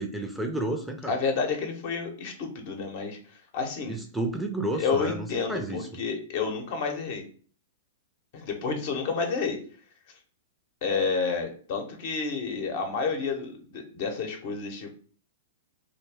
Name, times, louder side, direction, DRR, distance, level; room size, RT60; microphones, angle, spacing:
voice 1, 0.0-1.2 3.9-5.9, right 2 dB, 5° right, 3 dB, 0.5 m, -31 dB
voice 2, 1.1-3.2 3.5-4.0 4.8-7.2 8.3-9.6 10.8-15.0, left 5 dB, 55° left, 4 dB, 0.8 m, -30 dB
2.5 x 2.1 x 3.3 m, 0.43 s
hypercardioid pair, 110°, 0 cm